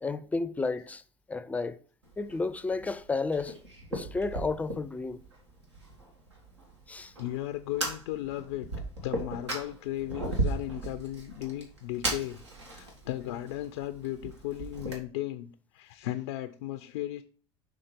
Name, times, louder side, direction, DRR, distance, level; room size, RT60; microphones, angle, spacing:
voice 1, 0.0-1.0 1.3-1.8 2.2-3.6 3.9-5.2 6.9-7.1, left 3 dB, 10° left, 0.4 m, -32 dB
Fire, 2.0-15.0, right 2 dB, 85° right, 1.5 m, -37 dB
voice 2, 7.2-8.7 9.0-12.4 12.7-17.2, left 14 dB, 70° left, 0.4 m, -36 dB
5.9 x 3.7 x 4.9 m
hypercardioid pair, 75°, 14 cm